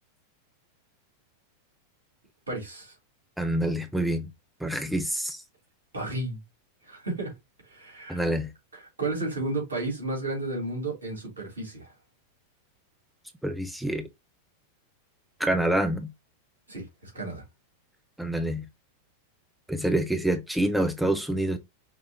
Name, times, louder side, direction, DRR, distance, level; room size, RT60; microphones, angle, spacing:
voice 1, 2.5-2.9 5.9-6.4 6.8-7.3 7.6-8.2 8.7-11.9 16.7-17.4, right 2 dB, 70° right, 3.3 m, -33 dB
voice 2, 3.4-4.3 4.6-5.4 8.1-8.5 13.4-14.1 15.4-16.1 18.2-18.6 19.7-21.6, right 1 dB, 5° right, 0.5 m, -27 dB
5.8 x 3.1 x 2.9 m
figure-of-eight pair, 90°, 0 cm